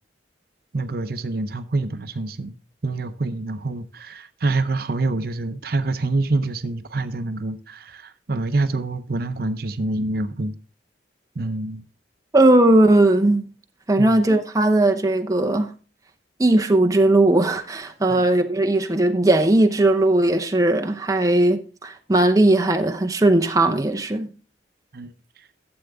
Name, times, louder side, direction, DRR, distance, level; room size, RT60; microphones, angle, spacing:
voice 1, 0.7-2.5 2.8-10.5 11.4-11.8 14.0-14.2 18.1-18.3 24.9-25.1, right 2 dB, 55° right, 0.7 m, -26 dB
voice 2, 12.3-13.5 13.9-15.7 16.4-24.3, right 2 dB, 20° right, 0.7 m, -18 dB
11.5 x 8.0 x 3.5 m
head